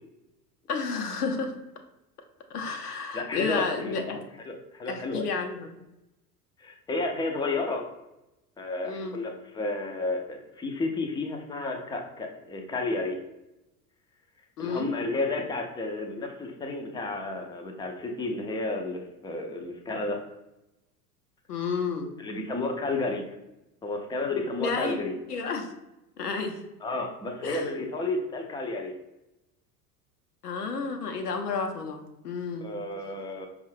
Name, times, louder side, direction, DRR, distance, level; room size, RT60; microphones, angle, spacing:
voice 1, 0.7-1.6 2.5-4.2 4.9-5.7 8.8-9.2 14.6-14.9 21.5-22.1 24.6-25.0 25.3-25.7 26.2-26.6 27.4-27.6 30.4-32.7, left 4 dB, 75° left, 5 dB, 0.7 m, -31 dB
voice 2, 3.1-4.0 4.5-5.3 6.6-7.8 8.6-13.2 14.6-20.2 22.2-23.4 23.8-25.1 26.8-28.9 32.6-33.5, left 2 dB, 10° left, 2 dB, 0.5 m, -32 dB
5.3 x 2.4 x 3.2 m, 0.93 s
figure-of-eight pair, 75°, 46 cm